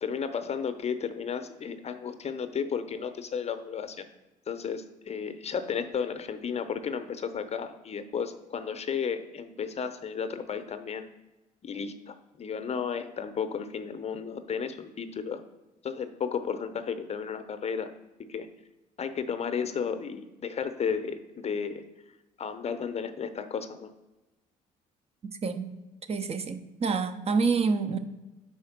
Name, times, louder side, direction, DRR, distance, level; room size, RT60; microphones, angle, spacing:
voice 1, 0.0-4.0 4.5-11.1 11.6-15.4 15.8-17.9 18.3-18.5 19.0-21.8 22.4-23.9, left 6 dB, 40° left, 10 dB, 0.7 m, -33 dB
voice 2, 25.4-25.7 26.1-28.0, right 4 dB, 40° right, 9 dB, 0.7 m, -27 dB
4.8 x 4.3 x 5.9 m, 1.1 s
supercardioid pair, 65°, 16 cm